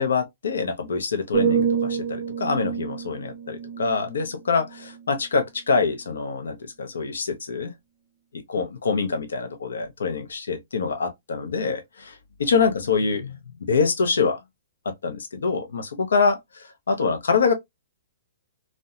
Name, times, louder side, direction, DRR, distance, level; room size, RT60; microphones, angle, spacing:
voice 1, 0.0-7.7 8.3-13.4 13.7-14.4 14.9-17.5, left 5 dB, 80° left, 0.5 m, -25 dB
sound 1, 1.3-5.2 5.7-6.0, right 7 dB, 40° right, 0.4 m, -28 dB
2.6 x 2.1 x 2.3 m
hypercardioid pair, 130°, 0 cm